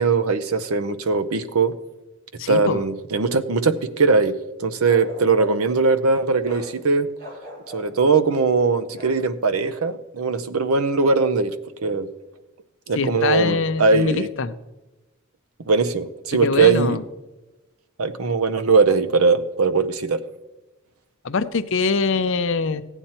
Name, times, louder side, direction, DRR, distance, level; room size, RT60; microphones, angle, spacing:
voice 1, 0.0-1.7 2.5-7.1 7.7-11.5 11.8-12.1 12.9-14.3 15.7-17.0 18.0-20.2, right 4 dB, 85° right, 12 dB, 0.7 m, -20 dB
voice 2, 2.4-2.8 13.0-14.5 16.4-17.0 21.2-22.8, left 4 dB, 60° left, 11 dB, 0.6 m, -23 dB
Bark, 4.8-5.7 6.4-6.7 7.2-7.9 8.9-9.2, left 2 dB, 45° right, 3.3 m, -37 dB
15.5 x 9.1 x 4.3 m, 1.1 s
head